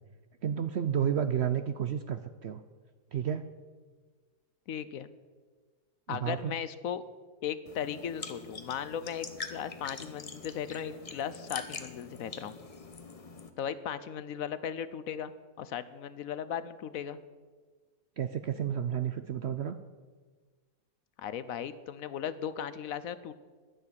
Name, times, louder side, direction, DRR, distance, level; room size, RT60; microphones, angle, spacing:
voice 1, 0.4-2.6 3.1-3.4 6.1-6.5 18.2-19.8, right 9 dB, 60° right, 10 dB, 0.7 m, -31 dB
voice 2, 4.7-5.1 6.1-7.0 7.4-12.5 13.6-15.3 15.6-17.2 21.2-23.3, left 8 dB, 70° left, 14 dB, 1.0 m, -37 dB
sound 1, 7.7-13.5, left 4 dB, 30° left, 0.8 m, -44 dB
11.0 x 10.5 x 8.6 m, 1.4 s
omnidirectional pair, 1.6 m